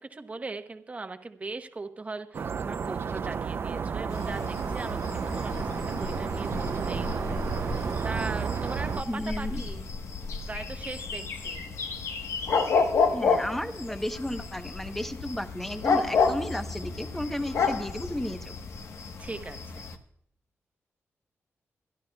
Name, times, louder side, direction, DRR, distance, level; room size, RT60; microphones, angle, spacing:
voice 1, 0.0-9.9 10.4-11.6 19.2-19.8, right 3 dB, 30° right, 7 dB, 1.1 m, -39 dB
sound 1, 2.3-9.0, right 6 dB, 50° right, 0.5 m, -31 dB
sound 2, 4.1-19.9, left 4 dB, 75° left, 1.2 m, -31 dB
voice 2, 9.1-9.6 13.1-18.5, left 1 dB, 5° left, 8 dB, 0.9 m, -33 dB
27.5 x 11.0 x 2.3 m, 0.66 s
wide cardioid pair, 110°, 5 cm